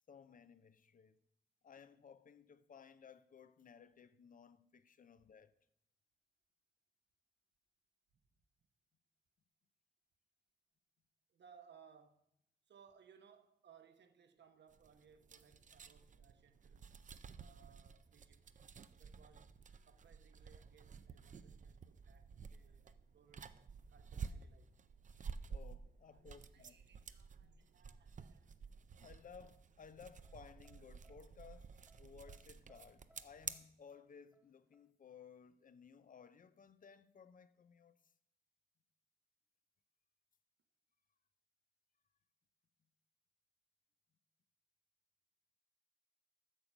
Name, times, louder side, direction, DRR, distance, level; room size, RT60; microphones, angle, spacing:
voice 1, 0.1-1.2 1.6-5.5 25.1-26.8 27.4-27.7 29.0-31.7 32.0-37.9, left 7 dB, 45° left, 0.6 m, -59 dB
voice 2, 11.3-12.3 12.7-16.9 17.4-18.6 18.9-23.6 23.9-24.8 26.1-28.5, right 7 dB, 70° right, 1.0 m, -66 dB
sound 1, 14.7-33.5, right 6 dB, 45° right, 0.5 m, -52 dB
sound 2, 29.4-34.9, left 1 dB, 5° right, 0.7 m, -73 dB
8.9 x 6.6 x 6.0 m
wide cardioid pair, 130°, 19 cm